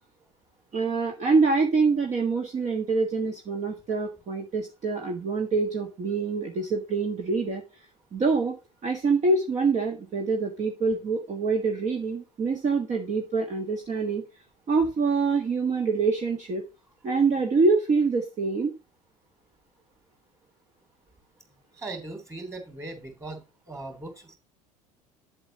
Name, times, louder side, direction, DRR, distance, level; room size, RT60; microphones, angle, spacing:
voice 1, 0.7-7.8 8.1-8.5 8.8-14.2 14.7-16.6 17.0-18.7, right 4 dB, 35° right, 3 dB, 1.5 m, -25 dB
voice 2, 21.8-23.4 23.7-24.4, right 2 dB, 15° right, 5 dB, 3.4 m, -38 dB
8.6 x 7.9 x 2.9 m, 0.28 s
figure-of-eight pair, 65°, 20 cm